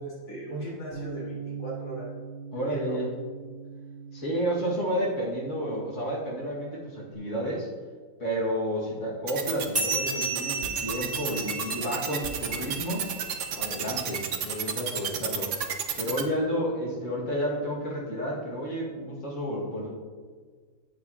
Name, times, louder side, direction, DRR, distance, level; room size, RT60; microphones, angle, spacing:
voice 1, 0.0-1.3 1.6-2.1 2.5-3.0, right 2 dB, 80° left, -6 dB, 2.5 m, -37 dB
Bass guitar, 0.9-7.2, right 5 dB, 15° left, 2.3 m, -42 dB
voice 2, 2.5-3.1 4.1-7.7 8.2-13.1 13.5-15.5 16.0-19.9, equal, 65° left, -5 dB, 2.3 m, -31 dB
sound 1, 9.3-16.2, right 7 dB, 65° right, 1.1 m, -30 dB
sound 2, 9.7-14.6, right 3 dB, 30° right, 1.5 m, -34 dB
9.6 x 8.4 x 2.8 m, 1.5 s
omnidirectional pair, 1.4 m